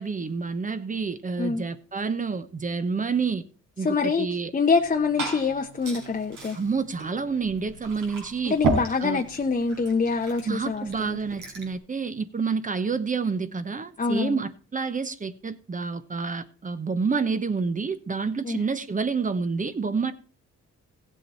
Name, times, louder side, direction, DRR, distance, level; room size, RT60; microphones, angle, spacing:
voice 1, 0.0-3.4 3.8-4.5 6.5-8.5 9.0-9.2 10.4-20.1, right 5 dB, 25° right, 1.0 m, -28 dB
voice 2, 3.8-4.3 4.5-6.6 8.5-11.2 14.0-14.4 18.4-18.6, left 4 dB, 25° left, 0.9 m, -25 dB
Liquid, 4.7-11.8, right 3 dB, 90° right, 4.4 m, -34 dB
16.0 x 7.6 x 4.2 m
cardioid pair, 90°, 30 cm